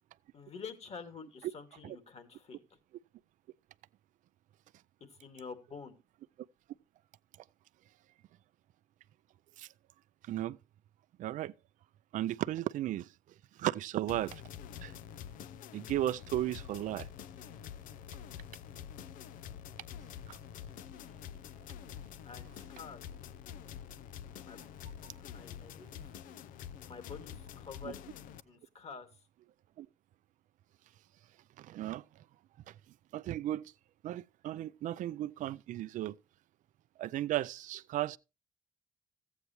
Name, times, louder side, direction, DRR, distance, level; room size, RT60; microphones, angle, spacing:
voice 1, 0.3-2.6 5.2-6.0 22.2-23.0 24.4-24.6 25.2-26.1 26.8-28.0 28.4-29.1, left 5 dB, 50° left, 2.4 m, -48 dB
voice 2, 10.2-10.6 11.2-11.5 12.1-13.1 13.6-14.4 14.8-14.9 15.7-17.1 20.3-20.4 25.0-25.1 27.8-27.9 29.8-29.9 31.6-32.0 32.7-32.8 33.1-33.7 34.0-36.2 37.0-38.2, right 13 dB, 70° right, 0.5 m, -35 dB
sound 1, 14.1-28.4, left 9 dB, 80° left, 0.6 m, -47 dB
14.5 x 8.2 x 3.0 m
cardioid pair, 85°, 14 cm